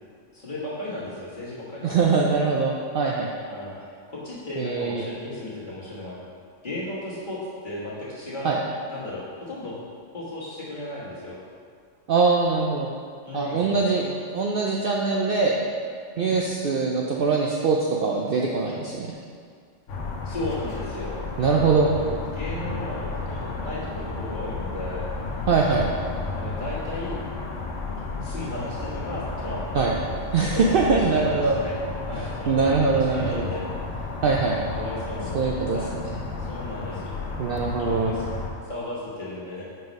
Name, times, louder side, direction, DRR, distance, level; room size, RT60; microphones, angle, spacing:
voice 1, 0.3-2.2 3.5-3.8 4.1-6.2 6.6-8.5 8.9-9.8 10.1-11.4 13.2-14.1 16.1-16.4 20.2-21.3 21.6-25.1 26.3-27.2 28.0-29.9 30.3-31.8 32.1-33.7 34.7-35.9 36.4-37.3 37.8-38.2 38.6-39.6, left 1 dB, 40° left, -8 dB, 1.6 m, -35 dB
voice 2, 1.8-3.3 4.6-5.0 8.4-8.6 12.1-12.9 13.3-14.0 14.3-15.6 16.2-19.1 21.4-21.9 25.5-25.9 29.7-29.9 30.3-31.6 32.5-33.5 34.2-34.6 35.3-35.8 37.4-38.1, right 4 dB, 60° right, -2 dB, 0.6 m, -22 dB
sound 1, 19.9-38.5, left 3 dB, 75° left, 1.1 m, -33 dB
5.3 x 3.9 x 5.2 m, 2.1 s
omnidirectional pair, 1.3 m